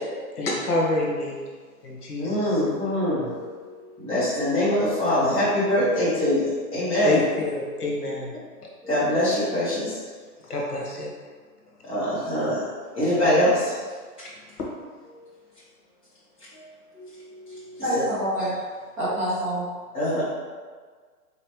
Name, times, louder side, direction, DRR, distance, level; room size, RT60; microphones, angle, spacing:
voice 1, 0.4-1.4 1.8-2.5 7.0-8.3 10.5-11.1, left 2 dB, 80° left, -2 dB, 1.2 m, -27 dB
voice 2, 2.2-7.2 8.8-10.0 11.8-12.6 12.9-13.8 15.1-15.3 16.5-18.0 19.9-20.2, left 1 dB, 10° left, -11 dB, 1.3 m, -24 dB
voice 3, 17.8-18.6 19.0-19.6, equal, 10° right, -14 dB, 0.5 m, -26 dB
3.9 x 3.2 x 3.0 m, 1.5 s
hypercardioid pair, 145°, 46 cm